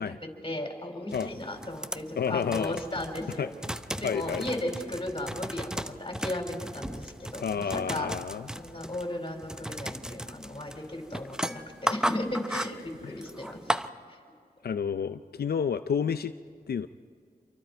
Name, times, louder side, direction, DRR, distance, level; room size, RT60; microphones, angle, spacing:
voice 1, 0.0-3.5 3.9-8.1 8.6-13.6 14.1-14.2, left 1 dB, 35° left, 3 dB, 4.8 m, -36 dB
sound 1, 1.1-13.9, equal, 5° right, 0.7 m, -36 dB
voice 2, 2.2-2.8 3.4-3.5 4.0-4.4 7.4-8.5 13.0-13.1 14.6-16.3 16.7-16.9, left 7 dB, 90° left, 9 dB, 0.5 m, -30 dB
27.5 x 23.5 x 4.5 m, 2.2 s
wide cardioid pair, 65°, 16 cm